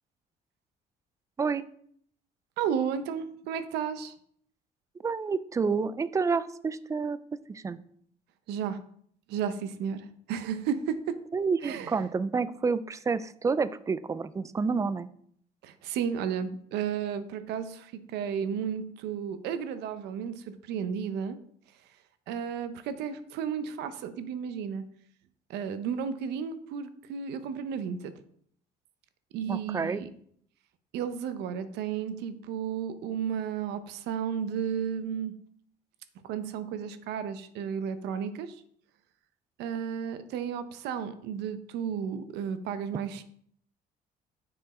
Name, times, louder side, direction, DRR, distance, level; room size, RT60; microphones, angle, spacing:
voice 1, 2.6-4.2 8.5-8.8 9.3-11.2 11.6-12.0 15.6-21.4 22.3-24.8 25.5-28.1 29.3-30.1 30.9-35.3 36.2-38.6 39.6-43.2, right 7 dB, 85° right, 12 dB, 0.6 m, -33 dB
voice 2, 5.0-7.2 7.5-7.8 11.3-15.1 29.5-30.0, right 5 dB, 20° right, 16 dB, 0.3 m, -29 dB
6.5 x 4.4 x 4.2 m, 0.64 s
cardioid pair, 110°, 17 cm